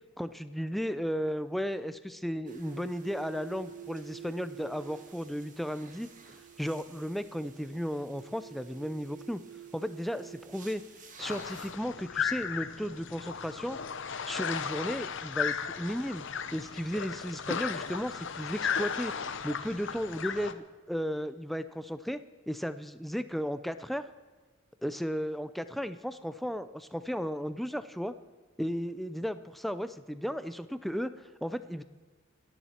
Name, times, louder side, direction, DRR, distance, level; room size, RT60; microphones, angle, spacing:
voice 1, 0.2-6.1 6.6-9.4 9.7-10.8 11.2-13.8 14.3-19.1 19.4-22.2 22.5-24.1 24.8-28.1 28.6-31.8, equal, ahead, 12 dB, 0.5 m, -34 dB
sound 1, 2.5-11.7, right 8 dB, 40° right, 1.6 m, -49 dB
sound 2, 11.2-20.5, left 7 dB, 60° left, 0.8 m, -35 dB
28.0 x 10.0 x 4.4 m, 1.4 s
head